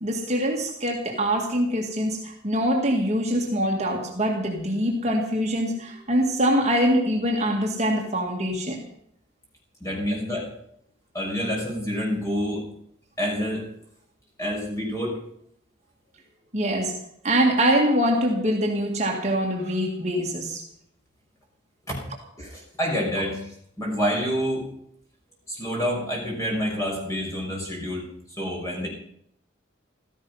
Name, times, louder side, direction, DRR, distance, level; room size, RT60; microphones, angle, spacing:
voice 1, 0.0-8.8 16.5-17.0 17.2-20.6, equal, 35° right, 1 dB, 2.0 m, -24 dB
voice 2, 9.8-10.5 11.1-12.6 13.2-13.7 14.4-15.2 21.9-22.0 22.4-23.5 23.8-24.6 25.5-28.0 28.3-28.9, equal, 15° left, -2 dB, 6.2 m, -27 dB
16.0 x 14.5 x 5.6 m, 0.70 s
head